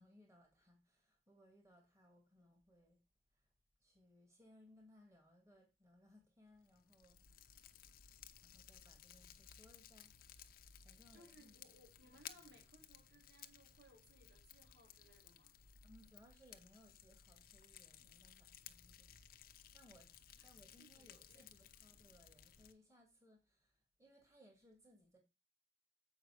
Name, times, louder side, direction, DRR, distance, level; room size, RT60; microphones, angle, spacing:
voice 1, 0.0-3.0 3.3-3.5 3.8-7.5 8.4-10.5 10.8-11.6 15.8-19.2 19.7-25.2, left 1 dB, 15° right, 2.0 m, -67 dB
Fire, 6.5-22.7, left 9 dB, 55° left, 0.7 m, -60 dB
voice 2, 11.1-15.5 20.4-20.5 20.8-21.5, right 1 dB, 65° right, 2.9 m, -66 dB
7.9 x 5.3 x 4.8 m
head